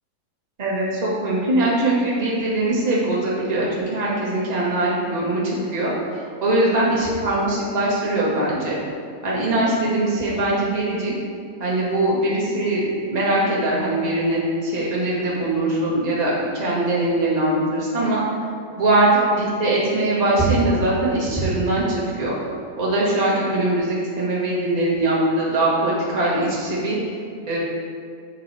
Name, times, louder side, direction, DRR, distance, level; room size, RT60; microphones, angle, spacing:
voice 1, 0.6-8.8 9.2-11.1 11.6-18.2 18.7-22.3 22.8-27.0 27.5-27.6, right 1 dB, 25° right, -7 dB, 0.8 m, -21 dB
8.2 x 7.9 x 3.5 m, 2.3 s
omnidirectional pair, 3.8 m